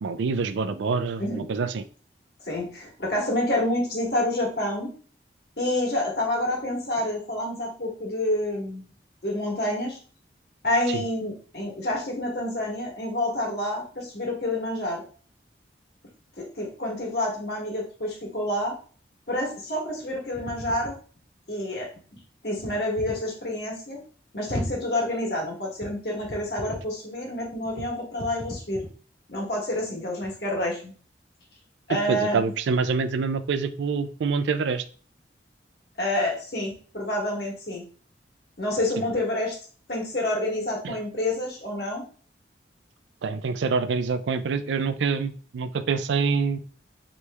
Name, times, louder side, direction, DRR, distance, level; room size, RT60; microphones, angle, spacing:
voice 1, 0.0-1.8 10.9-11.0 31.9-34.8 40.8-41.0 43.2-46.6, right 5 dB, 85° right, 11 dB, 0.4 m, -26 dB
voice 2, 2.4-4.9 5.6-8.9 9.2-10.0 10.6-15.0 16.4-18.8 19.3-21.0 21.5-21.9 22.4-24.0 24.3-28.8 29.3-30.9 31.9-32.5 36.0-37.8 38.6-39.6 39.9-42.0, left 1 dB, 65° left, -2 dB, 1.4 m, -28 dB
3.2 x 3.0 x 3.3 m, 0.42 s
head